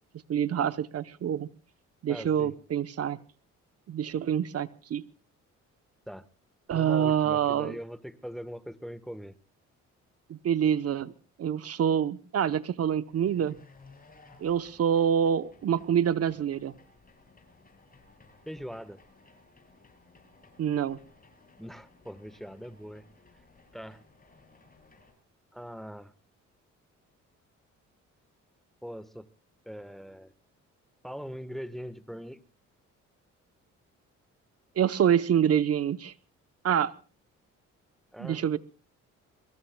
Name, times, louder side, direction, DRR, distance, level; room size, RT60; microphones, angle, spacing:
voice 1, 0.3-1.5 2.0-3.2 3.9-5.0 6.7-7.8 10.3-11.1 11.4-13.6 14.4-16.7 20.6-21.0 34.8-36.1 36.6-36.9 38.2-38.6, right 9 dB, 55° right, 14 dB, 0.8 m, -26 dB
voice 2, 2.1-2.6 6.1-6.3 6.7-9.3 18.5-19.0 21.6-23.1 23.7-24.0 25.5-26.1 28.8-29.3 29.6-30.3 31.0-32.4 38.1-38.4, equal, ahead, 14 dB, 1.2 m, -41 dB
sound 1, 13.1-25.1, left 3 dB, 30° left, 7.6 m, -58 dB
24.0 x 23.5 x 2.2 m, 0.37 s
cardioid pair, 90°, 30 cm